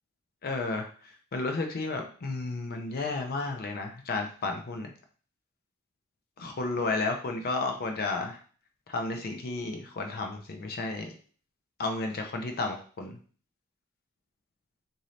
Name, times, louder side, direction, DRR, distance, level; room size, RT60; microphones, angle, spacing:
voice 1, 0.4-0.9 1.3-4.9 6.4-8.4 8.9-11.1 11.8-13.1, left 3 dB, 45° left, 4 dB, 0.5 m, -32 dB
3.8 x 2.7 x 3.1 m, 0.42 s
head